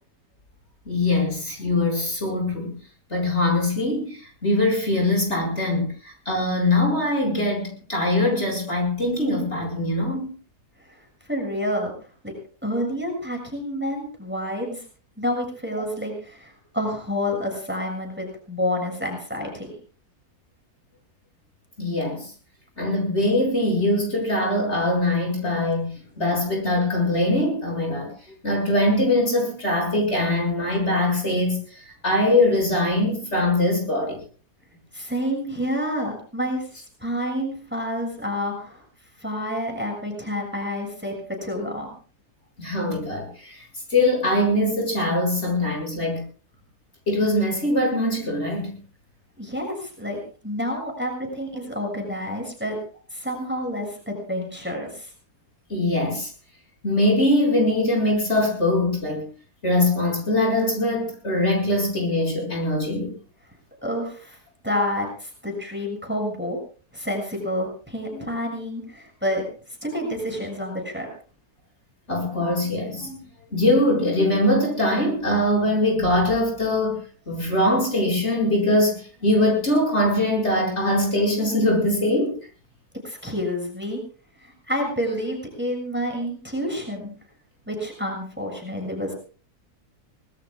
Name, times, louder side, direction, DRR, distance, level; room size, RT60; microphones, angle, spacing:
voice 1, 0.9-2.8 3.1-10.3 15.8-15.9 21.8-22.3 22.8-34.2 42.6-43.6 43.9-46.2 47.1-48.8 55.7-56.3 56.8-59.3 59.6-63.1 68.1-68.2 72.1-73.2 73.5-82.3, left 1 dB, 45° left, -1 dB, 7.9 m, -22 dB
voice 2, 11.3-11.9 12.2-12.3 12.6-14.8 15.2-19.7 34.9-36.7 37.0-38.8 39.2-41.1 41.4-41.9 49.4-52.8 53.1-55.1 63.8-64.4 64.6-66.6 66.9-69.4 69.8-71.1 83.0-84.0 84.4-87.1 87.7-89.1, equal, 5° right, 1 dB, 6.6 m, -28 dB
25.0 x 21.0 x 2.5 m, 0.40 s
omnidirectional pair, 1.7 m